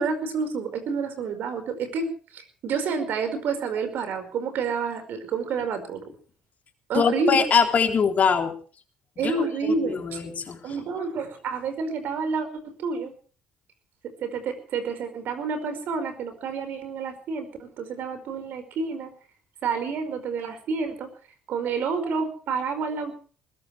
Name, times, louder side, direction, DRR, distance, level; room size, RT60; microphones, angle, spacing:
voice 1, 0.0-2.1 2.3-6.0 6.9-7.4 9.2-10.2 10.6-13.1 14.2-19.1 19.6-21.1 21.5-23.2, right 5 dB, 60° right, 8 dB, 5.2 m, -29 dB
voice 2, 6.9-8.5 9.2-9.3 10.0-10.6, left 6 dB, 45° left, 4 dB, 3.6 m, -22 dB
20.5 x 19.0 x 3.4 m, 0.40 s
hypercardioid pair, 60°, 4 cm